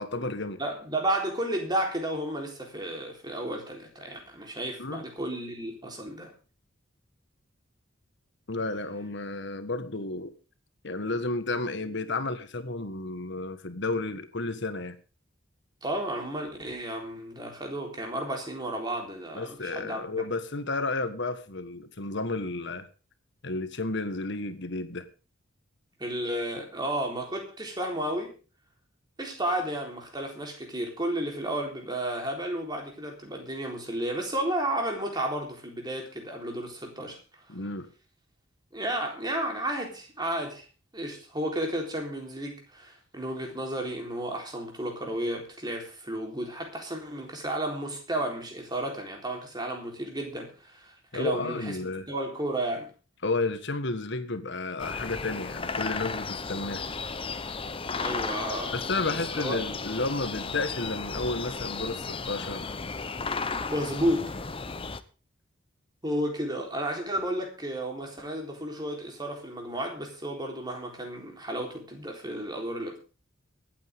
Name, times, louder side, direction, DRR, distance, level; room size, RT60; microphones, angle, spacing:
voice 1, 0.0-0.6 4.8-5.0 8.5-10.3 10.8-15.0 19.3-22.9 23.4-25.0 37.5-37.9 51.1-52.1 53.2-56.8 58.7-62.6, left 3 dB, 60° left, 10 dB, 1.6 m, -32 dB
voice 2, 0.6-6.3 15.8-20.0 26.0-28.3 29.2-37.2 38.7-40.6 40.9-51.8 52.1-52.9 58.0-59.6 63.7-64.3 66.0-73.0, right 1 dB, 20° right, 2 dB, 3.9 m, -32 dB
sound 1, 54.8-65.0, left 4 dB, 25° left, 0.8 m, -34 dB
23.5 x 8.8 x 3.7 m, 0.35 s
head